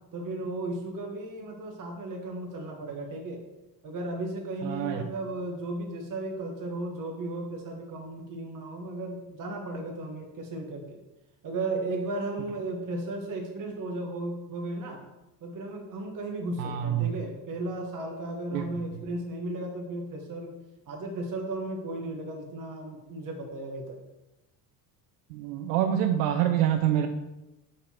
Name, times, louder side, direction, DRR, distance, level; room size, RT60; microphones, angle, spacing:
voice 1, 0.1-3.4 3.8-11.0 11.4-15.0 15.4-20.5 20.9-24.0, right 2 dB, 40° right, 1 dB, 1.2 m, -35 dB
voice 2, 4.6-5.0 16.6-17.1 18.5-18.7 25.3-27.1, right 11 dB, 70° right, 6 dB, 0.6 m, -26 dB
6.6 x 5.4 x 2.9 m, 0.98 s
hypercardioid pair, 60°, 49 cm